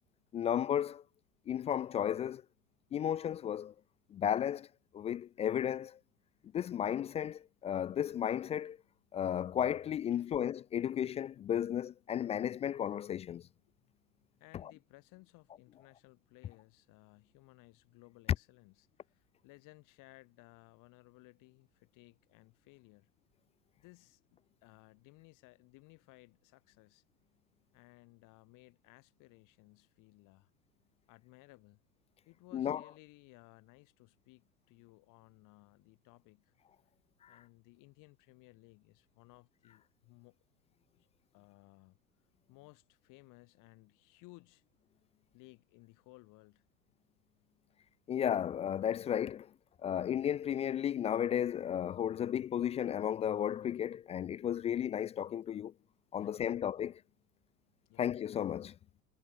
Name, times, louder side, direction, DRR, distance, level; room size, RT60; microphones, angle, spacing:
voice 1, 0.3-1.0 1.5-2.4 2.9-3.7 4.1-4.7 4.9-6.0 6.5-8.8 9.1-13.5 14.5-14.7 32.5-32.8 37.2-37.4 48.1-49.5 49.8-55.7 56.1-56.9 58.0-58.8, left 9 dB, 15° left, 0.4 m, -34 dB
voice 2, 14.4-23.1 23.8-27.0 27.7-30.5 31.1-31.8 32.3-36.5 37.3-40.4 41.3-42.0 42.5-44.6 45.3-46.6 56.2-56.6 57.9-58.0, left 24 dB, 40° left, 2.7 m, -60 dB
figure-of-eight pair, 85°, 46 cm